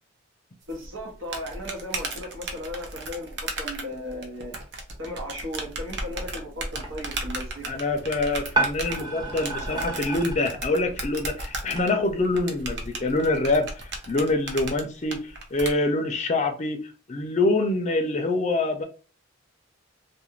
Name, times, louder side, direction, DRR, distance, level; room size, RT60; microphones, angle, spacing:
sound 1, 0.7-15.7, right 2 dB, 55° right, 0.6 m, -35 dB
voice 1, 0.7-4.6 5.0-7.8, left 1 dB, 75° right, 1.0 m, -36 dB
sound 2, 6.7-11.8, right 3 dB, 20° right, 0.7 m, -33 dB
voice 2, 7.7-18.8, left 2 dB, 35° left, 0.4 m, -25 dB
2.4 x 2.2 x 3.1 m
head